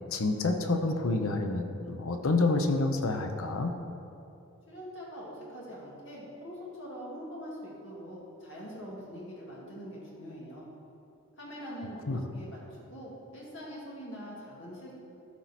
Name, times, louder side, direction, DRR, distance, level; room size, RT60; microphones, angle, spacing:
voice 1, 0.1-3.7 12.1-12.2, left 3 dB, 70° left, 6 dB, 0.6 m, -28 dB
voice 2, 4.7-10.7 11.4-14.9, equal, 55° left, -5 dB, 2.1 m, -43 dB
13.0 x 4.6 x 4.2 m, 2.7 s
head